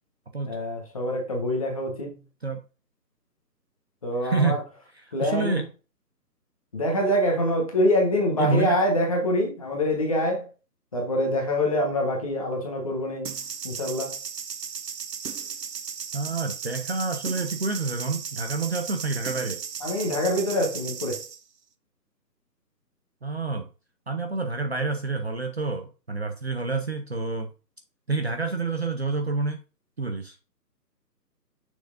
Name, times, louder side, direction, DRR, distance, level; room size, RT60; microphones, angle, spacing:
voice 1, 0.5-2.2 4.0-4.6 5.1-5.6 6.7-10.5 10.9-13.4 13.6-14.2 19.8-21.2, left 1 dB, 20° left, 1.3 m, -25 dB
voice 2, 4.2-4.6 4.9-5.7 8.4-8.8 16.1-19.6 23.2-23.7 24.1-27.5 28.1-29.6 30.0-30.4, right 3 dB, 40° right, 0.8 m, -28 dB
sound 1, 13.2-21.4, right 6 dB, 70° right, 0.9 m, -35 dB
6.9 x 6.3 x 2.5 m
hypercardioid pair, 165°, 50 cm